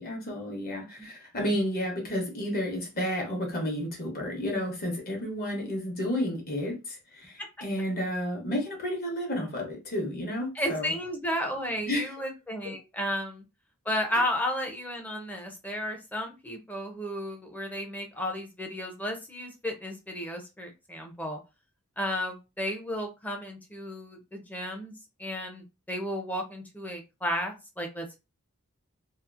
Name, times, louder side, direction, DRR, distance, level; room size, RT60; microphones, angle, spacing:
voice 1, 0.0-10.9 11.9-12.1, equal, 40° left, 0.9 m, -31 dB
voice 2, 10.6-13.4 13.9-21.4 22.0-24.9 25.2-28.2, equal, 5° left, 0.4 m, -33 dB
2.8 x 2.4 x 2.4 m
head